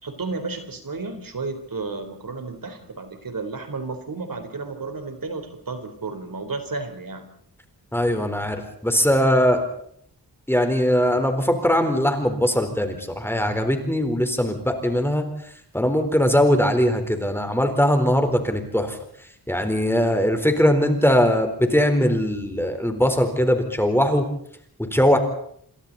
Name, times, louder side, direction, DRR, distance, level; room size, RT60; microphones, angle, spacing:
voice 1, 0.0-7.3, right 3 dB, 60° right, 7 dB, 4.1 m, -32 dB
voice 2, 7.9-9.6 10.5-15.2 15.7-19.0 19.5-24.3 24.9-25.2, equal, 5° left, 6 dB, 4.1 m, -20 dB
28.5 x 27.0 x 4.2 m, 0.65 s
wide cardioid pair, 110°, 38 cm